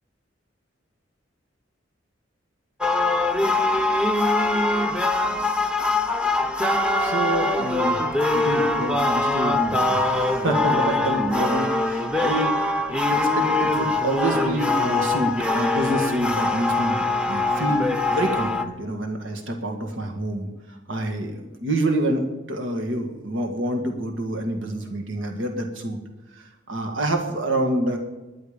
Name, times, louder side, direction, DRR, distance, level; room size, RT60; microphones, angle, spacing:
sound 1, 2.8-18.6, left 2 dB, 5° right, 0.9 m, -23 dB
voice 1, 7.0-8.0 8.3-12.6 13.1-20.5 20.9-26.0 26.4-28.0, right 1 dB, 85° right, 3 dB, 1.8 m, -27 dB
17.5 x 10.5 x 5.2 m, 1.1 s
head